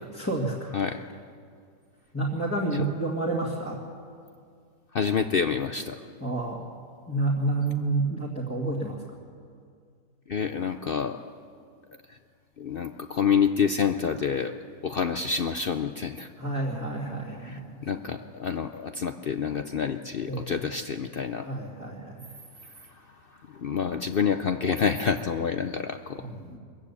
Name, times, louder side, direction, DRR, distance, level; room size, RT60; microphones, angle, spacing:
voice 1, 0.1-0.7 2.1-3.8 6.2-6.6 7.1-9.0 16.4-17.8 20.3-20.5 21.4-22.4 26.2-26.6, right 2 dB, 10° left, -4 dB, 2.0 m, -29 dB
voice 2, 4.9-6.0 10.3-11.3 12.1-12.2 12.6-14.5 14.8-16.3 17.4-21.5 22.8-26.3, left 6 dB, 55° left, 7 dB, 0.7 m, -28 dB
22.5 x 14.5 x 8.4 m, 2.2 s
omnidirectional pair, 1.5 m